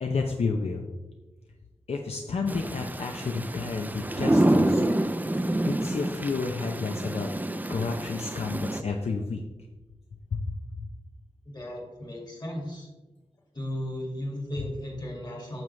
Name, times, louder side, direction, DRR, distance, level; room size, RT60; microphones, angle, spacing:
voice 1, 0.0-0.9 1.9-4.8 5.6-9.4 10.3-10.5 10.8-10.9, left 4 dB, 70° left, 2 dB, 0.6 m, -31 dB
sound 1, 2.5-8.8, right 1 dB, 15° right, 0.5 m, -27 dB
voice 2, 11.5-12.9 13.5-15.6, left 1 dB, 40° left, -1 dB, 2.1 m, -35 dB
9.2 x 6.2 x 3.2 m, 1.2 s
wide cardioid pair, 90°, 11 cm